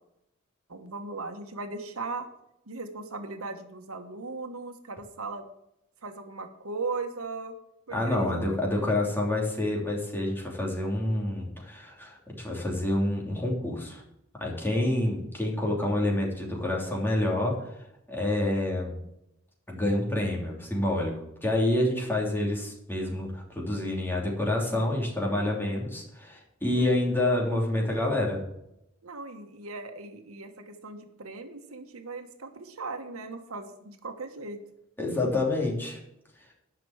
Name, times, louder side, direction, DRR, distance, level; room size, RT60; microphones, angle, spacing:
voice 1, 0.7-2.3 2.7-5.4 6.0-7.5 7.9-8.4 8.9-9.0 26.7-27.2 29.0-34.6, right 3 dB, 85° right, 6 dB, 1.4 m, -38 dB
voice 2, 7.9-14.0 14.4-17.7 18.1-19.0 19.7-21.1 21.4-28.4 35.0-36.0, left 1 dB, 10° left, -2 dB, 3.1 m, -28 dB
11.5 x 6.0 x 8.0 m, 0.81 s
head